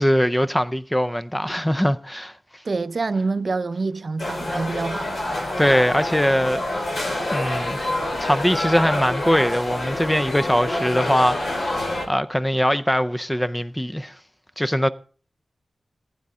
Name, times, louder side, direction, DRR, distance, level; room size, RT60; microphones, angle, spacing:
voice 1, 0.0-2.3 5.6-6.6 7.3-7.8 8.2-11.8 12.1-14.1 14.6-14.9, equal, 5° left, 0.5 m, -21 dB
voice 2, 2.7-5.2, right 3 dB, 50° right, 0.5 m, -26 dB
sound 1, 4.2-12.1, left 1 dB, 60° left, 3.1 m, -27 dB
15.0 x 9.4 x 3.6 m
wide cardioid pair, 110°, 0 cm